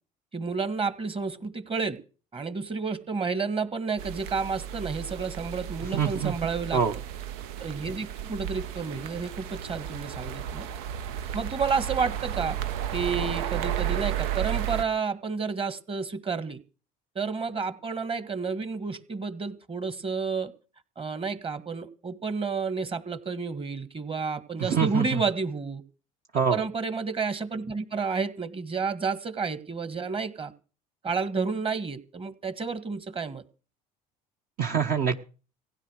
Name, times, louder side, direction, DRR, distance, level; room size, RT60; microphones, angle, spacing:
voice 1, 0.3-2.0 2.3-6.8 7.6-10.7 11.3-12.6 12.9-16.6 17.2-20.5 21.0-25.8 26.5-30.5 31.0-33.4, right 5 dB, 30° right, 13 dB, 1.7 m, -30 dB
sound 1, 4.0-14.8, right 11 dB, 85° right, 0.7 m, -33 dB
voice 2, 5.9-6.3 6.7-6.9 24.6-25.2 26.3-26.6 34.6-35.2, right 7 dB, 50° right, 4 dB, 1.2 m, -25 dB
16.0 x 9.8 x 6.5 m, 0.37 s
supercardioid pair, 80°, 19 cm